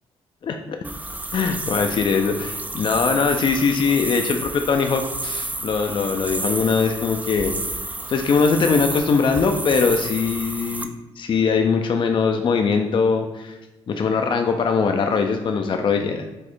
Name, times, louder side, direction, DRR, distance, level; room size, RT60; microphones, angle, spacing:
voice 1, 0.4-0.8 1.3-7.6 8.1-10.9 11.2-13.6 13.9-16.3, left 5 dB, 45° left, 5 dB, 0.4 m, -21 dB
sound 1, 0.8-10.9, right 2 dB, 15° right, 0.4 m, -30 dB
4.3 x 2.4 x 4.5 m, 1.1 s
cardioid pair, 70°, 11 cm